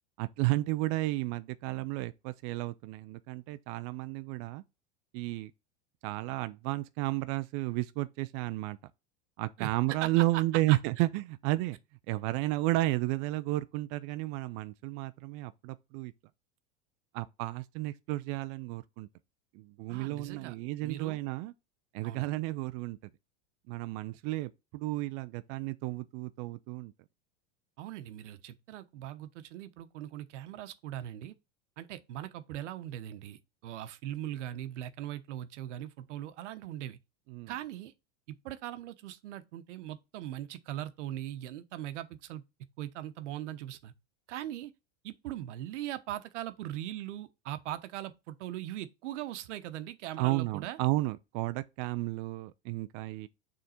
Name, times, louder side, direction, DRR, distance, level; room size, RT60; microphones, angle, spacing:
voice 1, 0.2-4.6 5.1-5.5 6.0-8.8 9.4-11.8 12.1-16.1 17.1-19.1 19.5-21.5 21.9-23.0 23.7-26.9 37.3-37.5 50.2-53.3, right 18 dB, 45° right, 0.5 m, -32 dB
voice 2, 9.6-10.2 10.7-10.8 19.9-20.6 20.8-21.2 22.0-22.3 27.8-31.3 31.8-37.0 37.5-37.9 38.4-42.4 42.8-43.9 44.3-44.7 45.0-50.8, right 12 dB, 80° right, 1.0 m, -40 dB
6.6 x 3.7 x 4.3 m
supercardioid pair, 140°, 35 cm